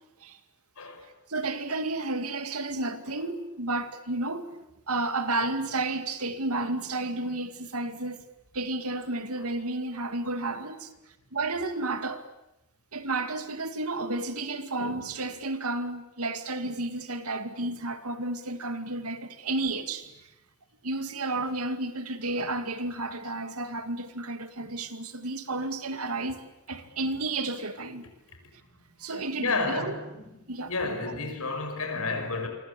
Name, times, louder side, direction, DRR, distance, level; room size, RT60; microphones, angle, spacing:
voice 1, 1.3-4.6 4.9-8.2 8.5-10.9 11.3-12.3 12.9-20.2 20.8-28.0 29.0-30.0 30.5-31.0, right 2 dB, 85° right, 2.3 m, -32 dB
voice 2, 29.4-30.2 30.6-32.5, left 3 dB, 80° left, 5.9 m, -30 dB
27.5 x 24.5 x 8.5 m
head